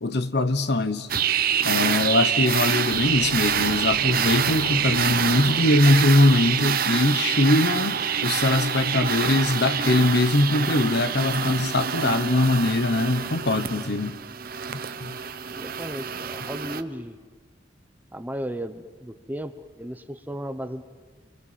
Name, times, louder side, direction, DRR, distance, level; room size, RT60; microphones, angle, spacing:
voice 1, 0.0-1.1 1.6-14.1 14.7-15.2, left 2 dB, 60° left, 11 dB, 1.1 m, -22 dB
sound 1, 1.1-16.8, right 8 dB, 50° right, 0.9 m, -26 dB
sound 2, 2.9-6.1, right 3 dB, 70° right, 1.1 m, -36 dB
voice 2, 15.5-17.2 18.1-20.8, equal, 10° right, 9 dB, 0.9 m, -35 dB
29.0 x 25.0 x 7.6 m, 1.5 s
head